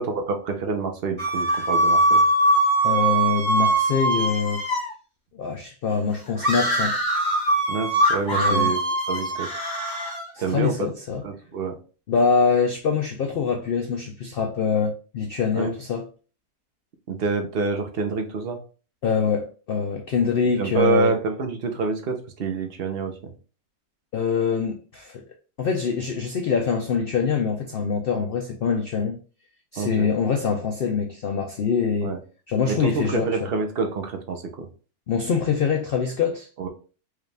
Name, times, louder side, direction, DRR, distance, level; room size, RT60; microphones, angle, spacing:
voice 1, 0.0-2.2 7.7-8.8 9.1-9.5 10.4-10.8 11.2-11.7 15.5-15.7 17.1-18.6 20.6-23.1 29.8-30.1 32.0-32.2 32.7-34.4 36.6-36.7, right 4 dB, 50° right, 0.7 m, -27 dB
sound 1, 1.2-4.9 6.4-10.3, right 1 dB, 15° left, 1.2 m, -22 dB
voice 2, 2.8-4.6 5.3-7.0 8.3-8.7 10.3-11.2 12.1-16.1 19.0-21.1 24.1-25.2 25.6-29.2 29.7-32.2 32.5-33.5 35.1-36.5, left 6 dB, 80° left, 0.5 m, -24 dB
4.8 x 2.4 x 3.2 m
omnidirectional pair, 1.6 m